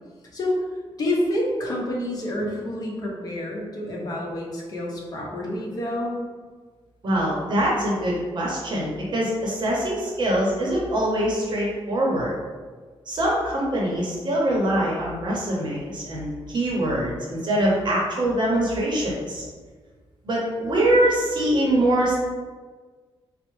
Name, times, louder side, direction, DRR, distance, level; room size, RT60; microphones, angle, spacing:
voice 1, 1.0-6.2, left 1 dB, 40° left, -3 dB, 0.8 m, -28 dB
voice 2, 7.0-12.3 13.1-19.4 20.2-22.2, right 1 dB, 50° right, -4 dB, 0.7 m, -23 dB
4.4 x 2.1 x 3.0 m, 1.4 s
wide cardioid pair, 160°, 10 cm